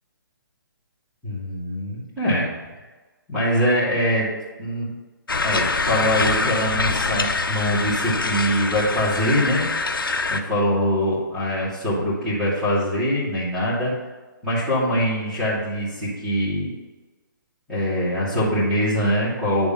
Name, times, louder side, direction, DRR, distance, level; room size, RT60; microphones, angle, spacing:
voice 1, 1.2-2.5 3.3-4.3 4.6-4.9 5.4-9.6 10.3-13.9 14.4-16.7 17.7-19.7, equal, 5° right, -12 dB, 2.4 m, -23 dB
sound 1, 5.3-10.4, left 3 dB, 90° left, 0.7 m, -24 dB
9.6 x 3.6 x 5.8 m, 1.2 s
hypercardioid pair, 145°, 11 cm